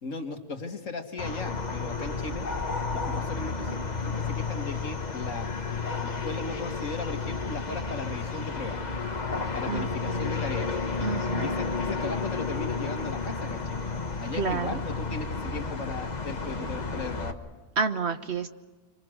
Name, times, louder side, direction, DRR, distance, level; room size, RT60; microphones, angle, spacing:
voice 1, 0.0-2.5 2.9-5.6 6.0-8.8 9.5-10.7 11.4-13.9 14.2-17.4, left 3 dB, 55° left, 5 dB, 2.1 m, -37 dB
sound 1, 1.2-17.3, left 4 dB, 30° left, 1.3 m, -32 dB
voice 2, 9.7-10.3 11.0-11.6 14.3-14.8 17.8-18.5, right 5 dB, 45° right, 9 dB, 1.3 m, -30 dB
27.0 x 25.0 x 6.4 m, 1.3 s
omnidirectional pair, 1.7 m